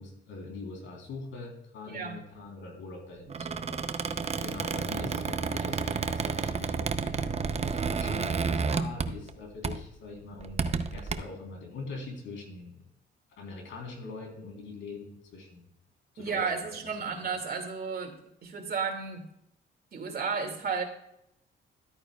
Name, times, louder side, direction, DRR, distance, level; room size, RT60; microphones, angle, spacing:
voice 1, 0.0-12.8 13.4-15.7 16.1-16.8 17.1-17.2, left 3 dB, 75° left, 1 dB, 3.6 m, -43 dB
Squeak, 3.3-9.4 9.6-9.9 10.4-11.1, right 5 dB, 30° right, 0.7 m, -31 dB
voice 2, 16.2-18.1 18.4-19.2 19.9-20.8, right 5 dB, 50° right, 3 dB, 2.3 m, -32 dB
13.0 x 9.0 x 2.3 m, 0.77 s
cardioid pair, 90°, 20 cm